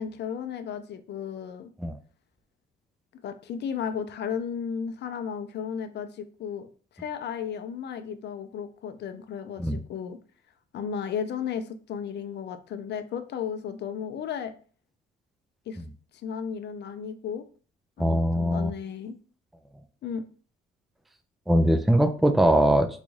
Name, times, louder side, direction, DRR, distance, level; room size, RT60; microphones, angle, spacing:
voice 1, 0.0-1.7 3.2-6.7 6.9-10.2 10.7-14.5 15.7-15.8 16.2-17.4 18.0-19.2 20.0-20.3, left 7 dB, 60° left, 10 dB, 0.5 m, -34 dB
voice 2, 18.0-18.7 21.5-22.9, right 1 dB, ahead, 7 dB, 0.3 m, -21 dB
4.0 x 2.3 x 3.1 m, 0.40 s
cardioid pair, 90°, 20 cm